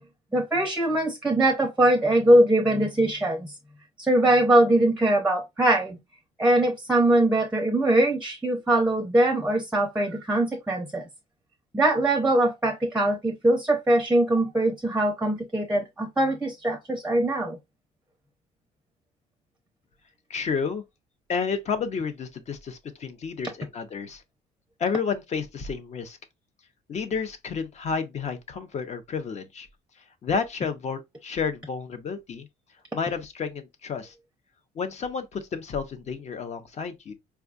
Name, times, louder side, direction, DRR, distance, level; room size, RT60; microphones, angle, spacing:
voice 1, 0.3-3.5 4.0-6.0 6.4-11.0 11.7-17.6, right 1 dB, 5° right, 0.6 m, -22 dB
voice 2, 20.3-20.8 21.3-24.2 24.8-26.2 26.9-29.7 30.2-32.5 32.9-34.1 34.7-37.1, left 5 dB, 40° left, 0.7 m, -31 dB
4.5 x 2.3 x 2.4 m
cardioid pair, 110°, 17 cm